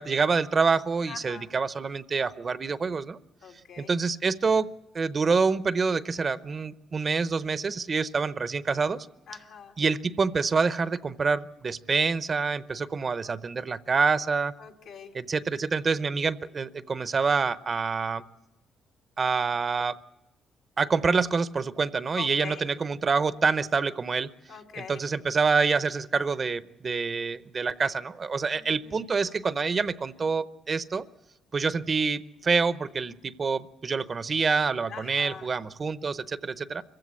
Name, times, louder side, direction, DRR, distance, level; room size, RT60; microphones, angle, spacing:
voice 1, 0.0-3.2 3.8-4.7 4.9-9.1 9.8-14.5 15.1-18.2 19.2-20.0 20.8-24.3 24.9-31.0 31.5-36.8, right 5 dB, 40° right, 15 dB, 0.7 m, -26 dB
voice 2, 1.1-1.5 3.4-3.9 9.3-9.8 14.6-15.1 22.2-22.6 24.5-25.0 28.5-29.1 34.9-35.5, left 7 dB, 85° left, 1 dB, 2.6 m, -43 dB
25.0 x 15.5 x 8.4 m, 0.97 s
cardioid pair, 90°, 0 cm